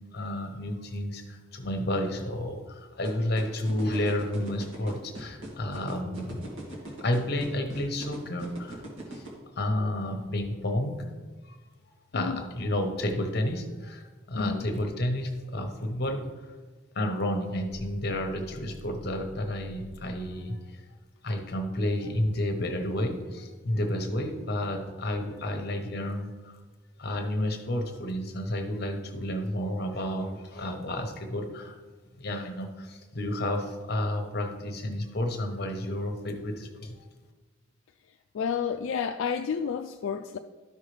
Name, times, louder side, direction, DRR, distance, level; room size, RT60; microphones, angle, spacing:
voice 1, 0.0-6.5 7.0-8.9 9.1-9.2 9.6-11.1 11.5-11.6 12.1-16.3 16.9-20.8 21.2-26.6 27.0-31.8 32.2-37.0, left 1 dB, 50° left, 5 dB, 1.0 m, -31 dB
sound 1, 3.0-9.3, right 1 dB, 75° right, 2.1 m, -40 dB
voice 2, 14.4-14.7 38.3-40.4, left 6 dB, 75° left, 6 dB, 0.3 m, -30 dB
sound 2, 17.7-20.5, left 1 dB, 35° right, 0.5 m, -47 dB
12.5 x 5.6 x 3.3 m, 1.3 s
head